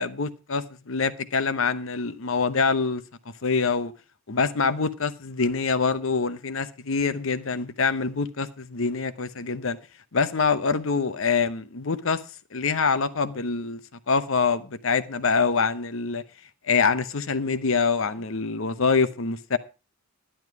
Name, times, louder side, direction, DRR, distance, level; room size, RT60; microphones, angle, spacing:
voice 1, 0.0-3.0 3.4-3.9 4.3-9.8 10.1-12.2 12.5-13.8 14.1-16.2 16.7-19.6, left 4 dB, 65° left, 0.8 m, -25 dB
11.0 x 10.5 x 4.7 m
head